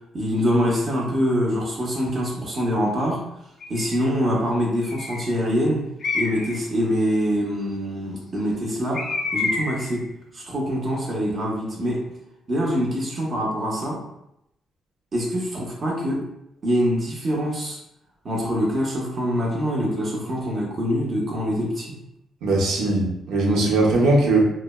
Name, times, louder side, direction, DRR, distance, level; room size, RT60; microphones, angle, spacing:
voice 1, 0.1-3.2 3.7-5.9 6.1-10.1 10.3-12.1 12.5-14.0 15.1-16.3 16.6-17.8 18.2-22.0, equal, 45° right, -3 dB, 0.7 m, -24 dB
Bird, 3.6-4.1 4.8-5.4 6.0-6.6 8.9-9.9, left 3 dB, 50° left, 0.4 m, -28 dB
voice 2, 22.4-24.5, right 2 dB, 85° right, -3 dB, 0.8 m, -19 dB
3.2 x 2.0 x 2.2 m, 0.80 s
cardioid pair, 90°, 0 cm